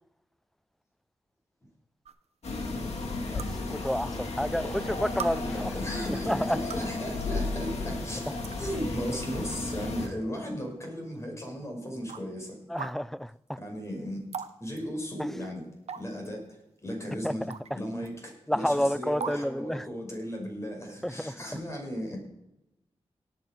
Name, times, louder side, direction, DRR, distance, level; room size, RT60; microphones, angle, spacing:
sound 1, 2.0-2.1 3.4-3.5 4.5-4.6 5.2-5.3 6.5-6.9 7.9-8.0 8.4-8.6 9.3-9.6 10.1-10.2 11.1-11.2 12.1-12.2 12.8-12.9 14.3-14.5 14.8-14.9 15.9-16.3 17.5-17.7 18.0-18.1 19.2-19.4, right 7 dB, 75° right, 0.8 m, -37 dB
sound 2, 2.4-10.1, left 3 dB, 80° left, 2.2 m, -34 dB
voice 1, 3.7-5.7 6.3-6.6 12.7-13.3 17.2-17.3 18.5-19.9 21.0-21.3, equal, 5° left, 0.4 m, -29 dB
voice 2, 5.5-12.6 13.6-14.2 14.6-15.6 16.0-17.5 17.7-22.2, equal, 25° left, 5.5 m, -36 dB
17.5 x 9.1 x 5.1 m
wide cardioid pair, 85°, 11 cm